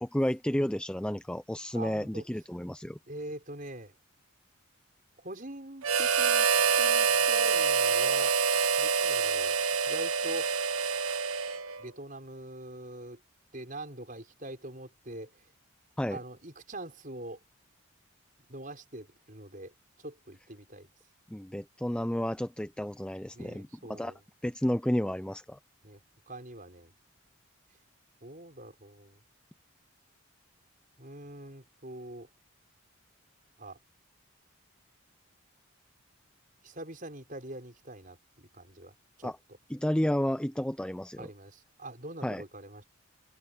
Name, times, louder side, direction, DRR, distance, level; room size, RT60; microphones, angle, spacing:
voice 1, 0.0-3.0 16.0-16.2 21.3-24.1 24.4-25.6 39.2-39.4 39.7-41.3 42.2-42.4, equal, 5° left, 0.4 m, -31 dB
voice 2, 1.7-2.3 3.1-3.9 5.2-6.5 6.8-8.4 8.8-9.6 9.9-10.5 11.8-13.2 13.5-15.5 16.1-17.4 18.5-20.9 23.3-24.2 25.8-26.0 26.3-26.9 28.2-29.2 31.0-32.3 33.6-33.8 36.6-39.3 41.2-42.8, right 1 dB, 40° right, 6.3 m, -44 dB
Harmonica, 5.8-11.9, right 6 dB, 85° right, 1.4 m, -26 dB
head